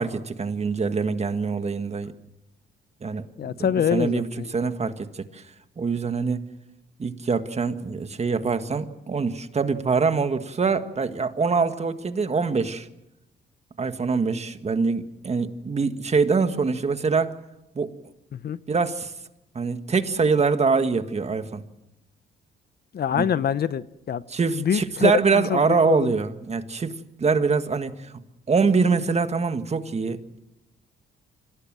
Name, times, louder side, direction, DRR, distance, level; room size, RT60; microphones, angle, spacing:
voice 1, 0.0-2.1 3.0-3.5 3.9-4.3 4.5-5.4 5.8-6.5 7.0-12.9 13.8-17.3 17.7-17.9 18.7-19.1 19.5-21.6 23.1-23.2 24.3-28.1 28.5-30.4, right 4 dB, 35° right, 9 dB, 1.7 m, -24 dB
voice 2, 3.4-4.5 18.3-18.6 22.9-24.2 24.5-26.2, left 8 dB, 55° left, 16 dB, 0.8 m, -25 dB
26.0 x 17.5 x 7.6 m, 0.90 s
cardioid pair, 90°, 20 cm